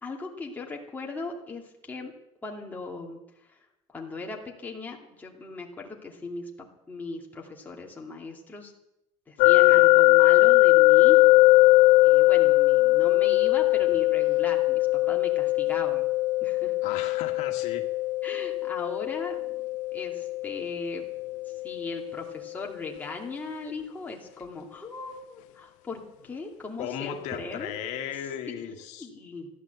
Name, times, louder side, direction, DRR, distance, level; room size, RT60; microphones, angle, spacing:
voice 1, 0.0-2.1 2.4-8.7 9.3-11.2 12.0-16.1 16.4-17.1 18.2-19.6 19.9-21.0 21.5-27.7 28.5-29.5, left 3 dB, 15° left, -1 dB, 2.4 m, -38 dB
sound 1, 9.4-22.3, left 19 dB, 90° left, 0.5 m, -21 dB
voice 2, 9.4-9.9 16.8-17.9 26.8-29.1, left 9 dB, 70° left, 4 dB, 1.7 m, -36 dB
15.0 x 11.0 x 8.0 m, 0.84 s
cardioid pair, 155°, 12 cm